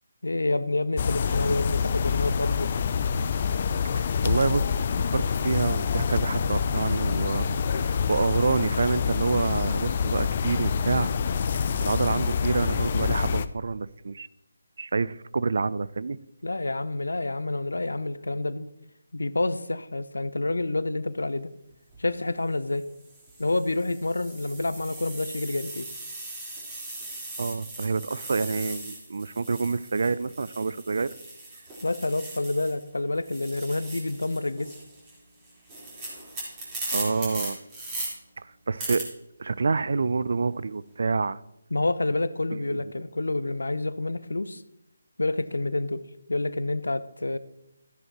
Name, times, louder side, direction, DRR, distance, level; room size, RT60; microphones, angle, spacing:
voice 1, 0.2-2.7 16.4-18.7 19.1-21.5 22.0-22.8 23.4-25.9 31.8-34.7 41.7-44.6 45.2-46.0 46.3-47.4, left 2 dB, 75° left, 15 dB, 0.7 m, -28 dB
sound 1, 1.0-13.5, left 6 dB, 40° left, 0.5 m, -26 dB
voice 2, 3.9-4.6 5.1-11.1 11.5-14.3 14.8-16.2 27.4-31.1 36.9-37.6 38.4-39.1 39.4-41.4 42.5-42.8, right 4 dB, 55° right, 17 dB, 0.4 m, -27 dB
sound 2, 21.7-22.0 22.7-32.9 33.1-38.1 38.8-39.0, right 2 dB, 15° right, 4.1 m, -39 dB
13.5 x 10.5 x 3.0 m, 0.86 s
figure-of-eight pair, 150°, 0 cm